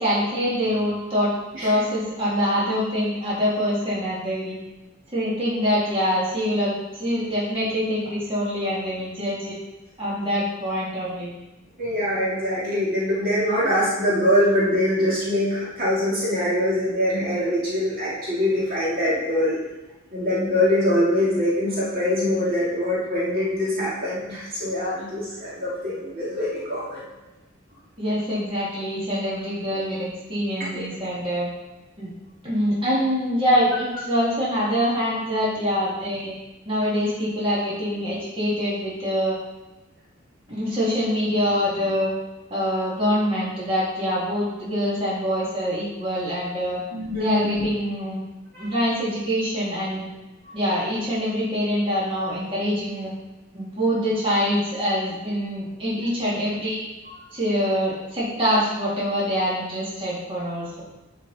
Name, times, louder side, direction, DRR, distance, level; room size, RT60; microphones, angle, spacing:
voice 1, 0.0-1.3 1.6-4.6 5.1-9.5 10.0-11.3 28.0-31.5 32.0-32.1 32.4-36.3 36.7-39.4 40.5-42.1 42.5-46.8 47.2-48.2 48.6-50.1 50.5-53.1 53.5-56.8 57.3-60.8, equal, 25° right, -8 dB, 2.6 m, -24 dB
voice 2, 11.8-19.6 20.1-27.0 30.7-30.8 46.9-47.5 48.5-48.7, left 1 dB, 45° right, -8 dB, 2.5 m, -23 dB
9.8 x 5.3 x 4.2 m, 1.1 s
head